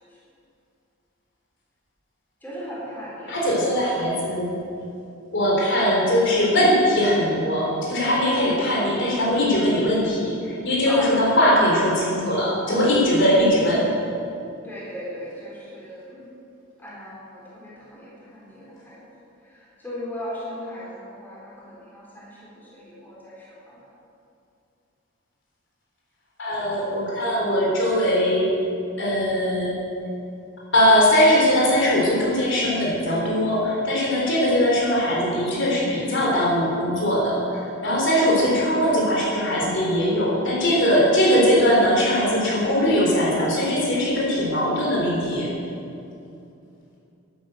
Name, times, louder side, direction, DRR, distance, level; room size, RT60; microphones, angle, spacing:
voice 1, 2.4-3.5 10.9-11.4 14.6-16.3 16.8-19.1 19.4-23.9, equal, 10° left, -7 dB, 4.0 m, -37 dB
voice 2, 3.3-4.6 5.3-13.8 26.4-28.4 29.0-29.7 30.7-45.5, equal, 55° left, -4 dB, 3.8 m, -20 dB
12.0 x 11.5 x 7.8 m, 2.6 s
head